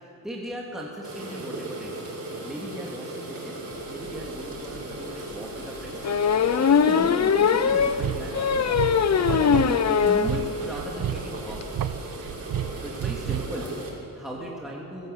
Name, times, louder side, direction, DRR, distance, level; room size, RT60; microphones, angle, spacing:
voice 1, 0.2-2.0 2.3-3.6 3.9-6.0 6.3-8.9 9.2-11.6 12.8-15.1, equal, ahead, -4 dB, 2.8 m, -38 dB
sound 1, 1.0-13.9, right 2 dB, 40° right, 5.6 m, -37 dB
sound 2, 4.3-4.4 4.8-4.9 6.0-10.3 10.7-10.8 11.1-11.2 11.4-11.6, left 7 dB, 45° left, 0.8 m, -21 dB
sound 3, 7.8-13.7, right 10 dB, 60° right, 0.8 m, -31 dB
22.0 x 16.5 x 8.2 m, 2.9 s
cardioid pair, 110°, 38 cm